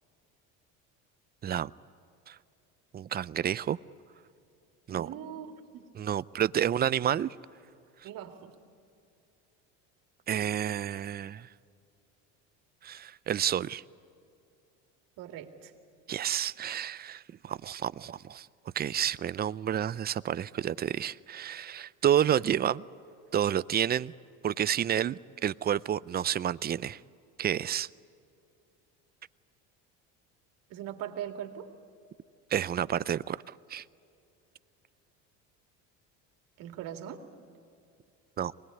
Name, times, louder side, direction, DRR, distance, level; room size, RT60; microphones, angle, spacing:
voice 1, 2.9-3.8 4.9-5.1 6.0-7.3 10.3-11.5 12.8-13.8 16.1-18.5 18.8-22.8 23.3-24.1 24.4-27.0 27.4-27.9 32.5-33.4 33.7-33.8 38.4-38.5, right 10 dB, 25° right, 0.5 m, -30 dB
voice 2, 4.9-5.9 8.0-8.5 15.2-15.7 30.7-31.7 36.6-37.2, right 10 dB, 65° right, 2.5 m, -41 dB
24.0 x 20.5 x 9.7 m
supercardioid pair, 100°, 36 cm